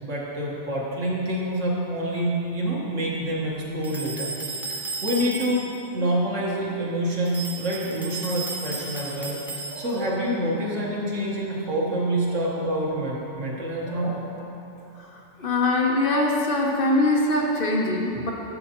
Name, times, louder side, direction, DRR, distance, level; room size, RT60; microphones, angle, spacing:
voice 1, 0.0-5.7 5.9-14.4, right 1 dB, 85° right, -4 dB, 1.7 m, -27 dB
sound 1, 3.8-5.8 7.3-10.1, right 3 dB, ahead, 0.4 m, -34 dB
voice 2, 15.0-18.3, left 2 dB, 50° left, -1 dB, 1.0 m, -23 dB
11.0 x 7.4 x 3.0 m, 3.0 s
omnidirectional pair, 1.2 m